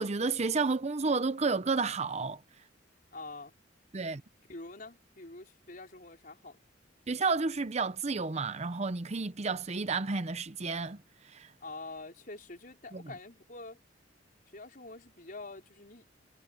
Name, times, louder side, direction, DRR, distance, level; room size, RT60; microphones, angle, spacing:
voice 1, 0.0-2.4 3.9-4.2 7.1-11.0 11.2-11.5 12.9-13.0, right 4 dB, 35° right, 0.7 m, -31 dB
voice 2, 3.1-3.5 4.5-6.6 11.6-13.8 14.5-16.1, left 2 dB, 45° left, 5.1 m, -46 dB
head